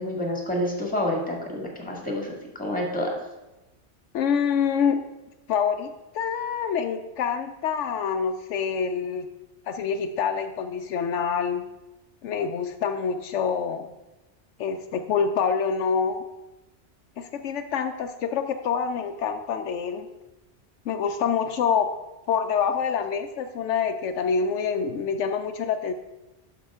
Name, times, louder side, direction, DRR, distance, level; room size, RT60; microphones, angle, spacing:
voice 1, 0.0-3.1, left 1 dB, 5° left, 0 dB, 1.7 m, -28 dB
voice 2, 4.1-5.0 5.5-9.3 9.7-11.7 12.2-13.9 14.6-16.2 17.2-20.1 20.9-21.9 22.3-25.9, left 6 dB, 80° left, 8 dB, 0.9 m, -26 dB
11.5 x 5.6 x 3.5 m, 1.0 s
omnidirectional pair, 1.2 m